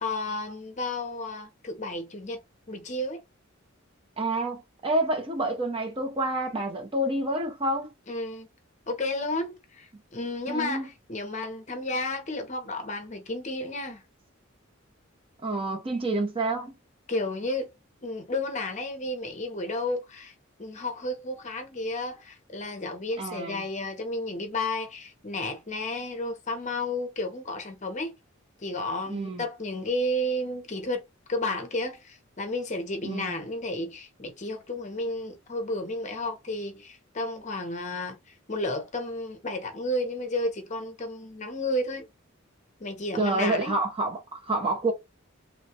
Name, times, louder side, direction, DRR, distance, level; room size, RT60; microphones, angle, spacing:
voice 1, 0.0-2.4 2.7-3.2 8.1-8.5 8.9-14.0 17.1-17.7 18.0-20.3 20.6-28.2 28.6-31.0 31.3-42.1 42.8-43.7, left 1 dB, 35° left, 0.7 m, -32 dB
voice 2, 4.2-7.9 10.5-10.9 15.4-16.7 23.2-23.6 29.1-29.4 33.0-33.3 43.2-44.9, right 2 dB, 25° right, 0.6 m, -28 dB
3.1 x 2.3 x 2.7 m
head